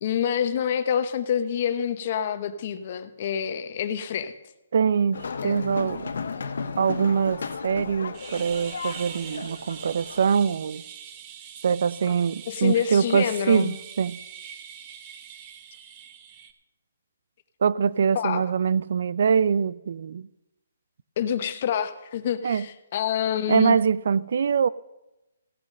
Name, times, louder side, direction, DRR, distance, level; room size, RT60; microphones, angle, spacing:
voice 1, 0.0-4.3 5.4-5.6 12.5-13.8 18.1-18.4 21.2-23.8, left 9 dB, 40° left, 0.9 m, -27 dB
voice 2, 4.7-6.1 6.8-10.8 11.6-14.2 17.6-20.3 22.4-22.7 23.5-24.7, right 6 dB, 60° right, 0.4 m, -23 dB
sound 1, 5.1-10.3, left 5 dB, 75° left, 1.0 m, -34 dB
sound 2, 8.1-16.5, right 9 dB, 30° right, 0.8 m, -43 dB
16.0 x 6.4 x 6.4 m
hypercardioid pair, 160°, 0 cm